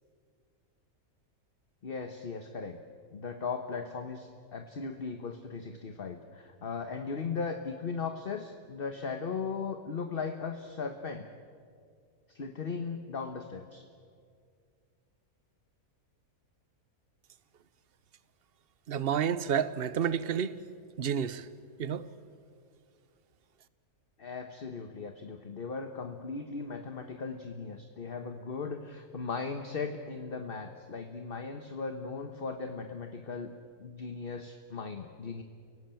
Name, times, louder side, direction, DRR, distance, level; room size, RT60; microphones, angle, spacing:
voice 1, 1.8-2.8 3.1-11.3 12.3-13.8 24.2-33.5 33.8-35.4, left 5 dB, 40° left, 1.3 m, -37 dB
voice 2, 18.9-20.6 21.0-21.5 21.8-22.1, right 8 dB, 45° right, 1.0 m, -30 dB
30.0 x 17.5 x 9.1 m
omnidirectional pair, 1.6 m